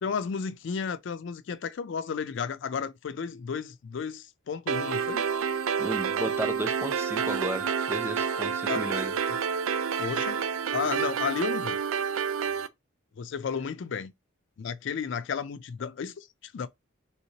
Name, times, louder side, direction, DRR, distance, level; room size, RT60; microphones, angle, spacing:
voice 1, 0.0-5.2 8.7-8.8 10.0-10.4 10.7-11.8 13.2-14.1 14.6-16.7, left 6 dB, 60° left, 0.3 m, -33 dB
sound 1, 4.7-12.7, right 7 dB, 80° right, 0.4 m, -29 dB
voice 2, 5.8-9.1, right 1 dB, 10° right, 0.4 m, -34 dB
3.5 x 2.8 x 2.7 m
head